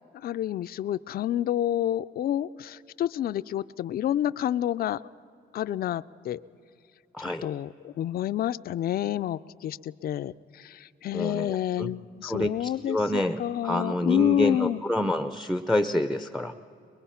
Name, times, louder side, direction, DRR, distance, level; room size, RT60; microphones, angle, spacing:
voice 1, 0.2-5.0 5.5-6.4 7.2-14.8, left 11 dB, 50° left, 14 dB, 0.4 m, -29 dB
voice 2, 7.1-7.5 11.1-11.9 12.2-16.5, left 1 dB, ahead, 11 dB, 0.5 m, -28 dB
22.0 x 21.5 x 5.7 m, 2.6 s
cardioid pair, 90°, 20 cm